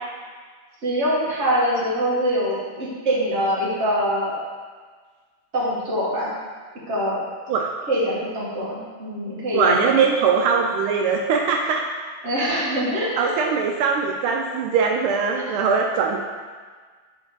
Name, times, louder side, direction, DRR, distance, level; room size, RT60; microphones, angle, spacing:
voice 1, 0.8-4.4 5.5-6.3 6.9-7.2 7.9-9.8 12.2-13.3 15.5-15.6, equal, 35° right, -8 dB, 1.8 m, -24 dB
voice 2, 9.5-11.8 13.2-16.2, right 5 dB, 85° right, 1 dB, 1.4 m, -21 dB
4.7 x 4.5 x 5.5 m, 1.5 s
omnidirectional pair, 2.3 m